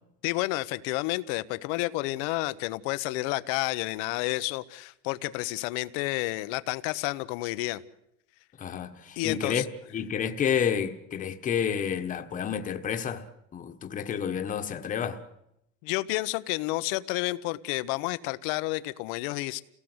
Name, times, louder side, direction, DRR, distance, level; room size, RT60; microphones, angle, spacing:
voice 1, 0.2-7.8 9.2-9.6 15.8-19.6, left 20 dB, 75° left, 1.2 m, -30 dB
voice 2, 8.6-9.7 9.9-13.2 13.5-15.2, left 8 dB, 25° left, 1.5 m, -30 dB
29.5 x 18.0 x 8.1 m
cardioid pair, 155°, 29 cm